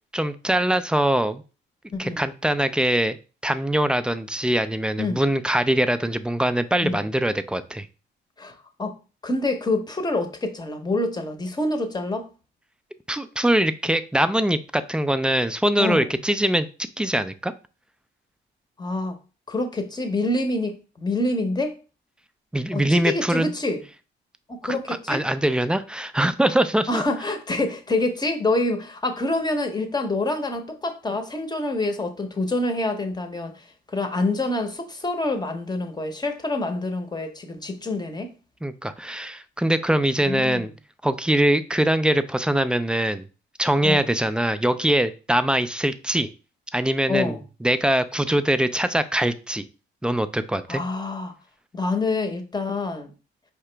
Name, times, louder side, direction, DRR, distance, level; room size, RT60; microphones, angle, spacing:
voice 1, 0.1-1.4 2.0-3.2 3.4-7.9 13.1-16.7 17.0-17.5 22.5-23.5 24.7-27.0 38.6-40.7 41.0-43.3 43.6-46.3 46.7-49.6 50.0-50.8, right 1 dB, 5° right, 0.3 m, -22 dB
voice 2, 1.9-2.2 5.0-5.2 6.8-7.0 8.4-8.9 9.2-12.3 15.8-16.1 18.8-19.2 19.5-21.8 22.7-23.8 24.5-25.2 26.9-38.3 40.3-40.6 43.8-44.1 47.1-47.4 50.7-51.3 51.7-53.1, left 2 dB, 20° left, 0.8 m, -26 dB
4.7 x 2.9 x 3.3 m
cardioid pair, 90°, 20 cm